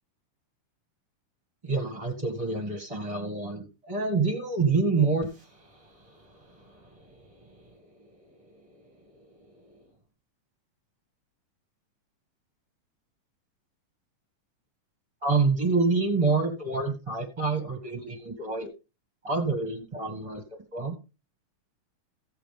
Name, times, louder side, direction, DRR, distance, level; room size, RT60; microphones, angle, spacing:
voice 1, 1.6-9.8 15.2-18.7 19.2-20.9, right 4 dB, 15° right, 4 dB, 1.3 m, -29 dB
15.5 x 7.7 x 3.4 m, 0.30 s
omnidirectional pair, 3.6 m